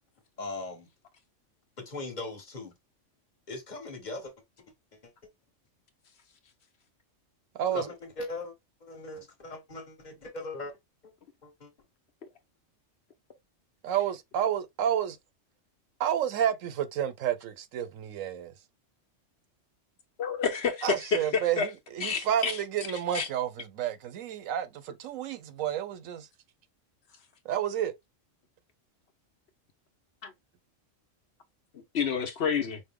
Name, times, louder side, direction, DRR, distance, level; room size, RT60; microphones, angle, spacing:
voice 1, 0.4-0.9 1.8-2.7 3.5-4.3 4.9-5.1 7.7-8.5 8.8-10.7 11.0-11.1 11.4-11.7, left 2 dB, 35° left, 1.3 m, -39 dB
voice 2, 7.5-7.9 13.8-15.2 16.0-18.5 20.8-26.3 27.4-27.9, right 10 dB, 90° right, 1.1 m, -30 dB
voice 3, 20.2-21.7 22.0-22.6 23.1-23.3 30.2-30.3 31.7-32.8, left 6 dB, 60° left, 1.0 m, -29 dB
5.2 x 2.1 x 3.6 m
omnidirectional pair, 1.3 m